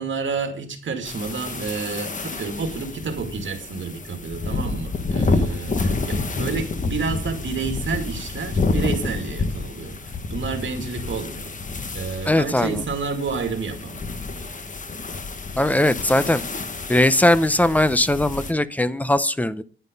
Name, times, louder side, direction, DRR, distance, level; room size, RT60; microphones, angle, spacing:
voice 1, 0.0-11.5 11.9-14.2, right 5 dB, 70° right, 6 dB, 2.4 m, -30 dB
sound 1, 1.0-18.5, left 3 dB, 40° left, 1.3 m, -29 dB
voice 2, 12.3-12.8 15.6-16.4 16.9-19.6, left 1 dB, 5° left, 14 dB, 0.6 m, -19 dB
10.5 x 9.7 x 5.3 m, 0.39 s
wide cardioid pair, 160°, 20 cm